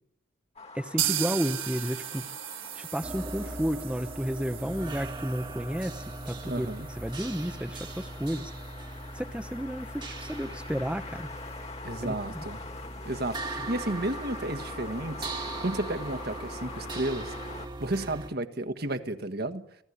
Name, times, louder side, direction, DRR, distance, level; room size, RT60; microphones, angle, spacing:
sound 1, 0.6-17.7, left 3 dB, 35° left, 2.2 m, -45 dB
voice 1, 0.7-2.3 2.7-8.5 9.1-11.3 12.0-12.4, equal, 5° right, 6 dB, 0.9 m, -32 dB
sound 2, 1.0-8.7 9.0-9.1 9.4-9.5 9.9-10.0, right 12 dB, 75° right, 1.4 m, -37 dB
sound 3, 3.0-18.3, right 2 dB, 25° right, 1.7 m, -40 dB
voice 2, 6.4-6.9 11.8-12.6 13.0-17.3 17.8-19.6, right 1 dB, 50° right, 8 dB, 1.6 m, -32 dB
28.0 x 16.5 x 10.0 m, 0.82 s
head